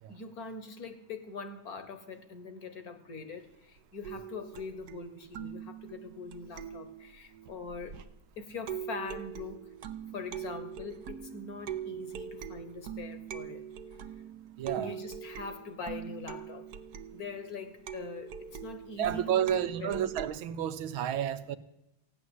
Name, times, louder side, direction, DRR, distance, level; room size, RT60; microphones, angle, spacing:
voice 1, 0.1-8.0 8.4-9.7 10.1-13.6 14.7-16.7 17.1-20.0, left 4 dB, 50° left, 10 dB, 1.4 m, -43 dB
sound 1, 4.0-8.2 8.7-20.3, right 9 dB, 60° right, 1.1 m, -42 dB
voice 2, 14.6-15.0 19.0-21.6, right 10 dB, 80° right, 11 dB, 1.6 m, -31 dB
15.5 x 9.7 x 7.9 m, 0.84 s
omnidirectional pair, 2.2 m